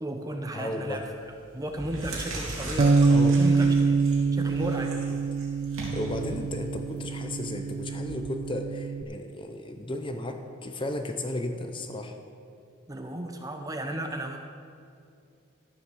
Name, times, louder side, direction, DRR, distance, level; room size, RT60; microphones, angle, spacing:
voice 1, 0.0-1.1 1.5-4.0 4.3-4.9 12.9-14.4, right 1 dB, 15° right, 4 dB, 0.7 m, -34 dB
voice 2, 0.5-1.0 3.1-3.5 5.9-12.2, left 1 dB, 25° left, 5 dB, 0.6 m, -34 dB
sound 1, 0.9-1.2 1.6-8.1, right 2 dB, 85° right, 2.7 m, -39 dB
Bass guitar, 2.8-9.0, right 4 dB, 40° right, 0.3 m, -25 dB
13.0 x 7.0 x 6.3 m, 2.4 s
head